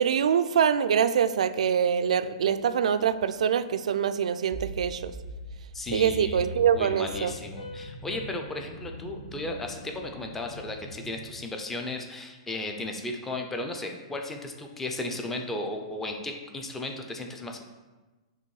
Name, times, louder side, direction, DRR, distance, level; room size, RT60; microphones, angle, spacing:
voice 1, 0.0-5.1 5.9-7.3, right 8 dB, 90° right, 12 dB, 0.3 m, -24 dB
sound 1, 4.5-11.4, equal, 50° left, 1.0 m, -42 dB
voice 2, 5.7-6.4 6.7-17.6, left 2 dB, 5° left, 3 dB, 0.4 m, -35 dB
Piano, 7.1-10.5, left 3 dB, 80° left, 1.5 m, -46 dB
6.8 x 3.0 x 4.7 m, 1.2 s
hypercardioid pair, 175°, 3 cm